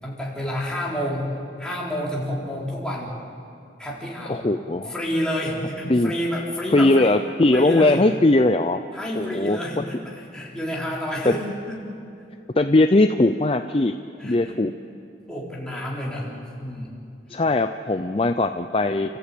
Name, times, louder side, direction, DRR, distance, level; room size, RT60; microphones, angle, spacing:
voice 1, 0.0-3.1 3.8-4.5 4.9-7.2 7.5-8.0 8.9-11.9 14.2-14.6 15.3-16.3 16.6-16.9, equal, 5° left, -4 dB, 3.8 m, -29 dB
voice 2, 4.3-4.9 5.9-6.1 6.7-8.8 9.2-9.6 11.3-11.4 12.6-14.0 14.2-14.7 17.3-19.2, left 2 dB, 30° left, 8 dB, 0.5 m, -19 dB
30.0 x 14.5 x 8.5 m, 2.5 s
head